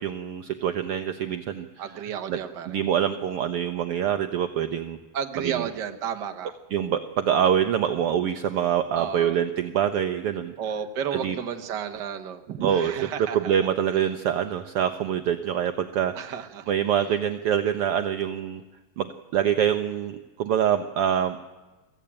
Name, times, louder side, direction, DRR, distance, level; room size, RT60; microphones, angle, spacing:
voice 1, 0.0-2.0 2.3-2.4 2.7-5.0 5.4-5.7 6.7-10.5 11.1-11.4 12.6-12.9 13.2-16.4 16.7-18.6 19.0-21.4, right 9 dB, 75° right, 8 dB, 1.3 m, -25 dB
voice 2, 1.8-2.8 5.1-6.5 8.9-9.4 10.6-13.4 16.1-16.7, right 8 dB, 50° right, 6 dB, 1.3 m, -32 dB
24.0 x 15.0 x 8.8 m, 1.2 s
omnidirectional pair, 3.7 m